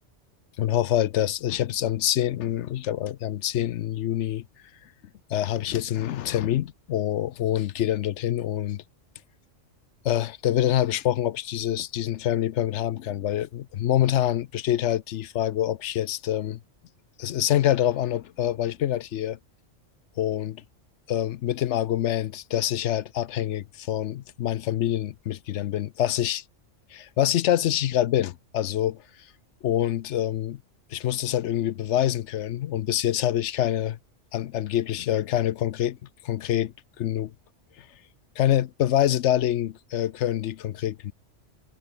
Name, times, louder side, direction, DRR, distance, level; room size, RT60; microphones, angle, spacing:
voice 1, 0.6-4.4 5.3-8.8 10.0-16.6 17.2-19.4 20.2-20.6 21.1-26.4 26.9-29.0 29.6-30.6 30.9-34.0 34.3-36.0 36.2-37.3 37.8-37.9 38.4-41.1, left 12 dB, 75° left, 0.9 m, -26 dB
omnidirectional pair, 1.3 m